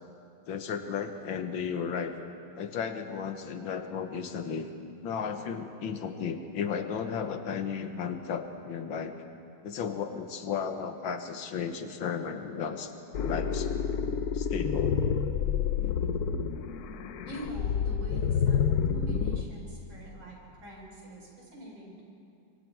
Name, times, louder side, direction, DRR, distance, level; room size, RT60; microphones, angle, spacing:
voice 1, 0.5-2.1 2.5-4.7 5.0-9.2 9.6-13.8 14.3-15.0 15.8-16.2, left 6 dB, 85° left, 7 dB, 1.9 m, -34 dB
sound 1, 13.1-19.4, left 7 dB, 65° left, 1.1 m, -28 dB
voice 2, 17.3-22.0, equal, 85° right, -2 dB, 5.4 m, -44 dB
25.0 x 24.5 x 4.7 m, 2.5 s
omnidirectional pair, 2.1 m